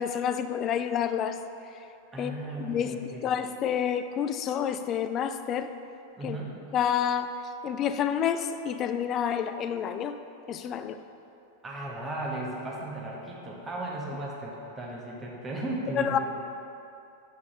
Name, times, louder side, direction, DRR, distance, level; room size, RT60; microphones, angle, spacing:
voice 1, 0.0-1.4 2.2-2.3 2.6-5.7 6.2-6.4 6.7-10.2 10.5-11.0 15.9-16.2, left 8 dB, 30° left, 10 dB, 0.3 m, -29 dB
voice 2, 2.1-3.4 6.2-6.5 11.6-16.2, right 2 dB, 15° right, -3 dB, 1.3 m, -36 dB
7.2 x 5.5 x 4.0 m, 2.8 s
figure-of-eight pair, 90°, 0 cm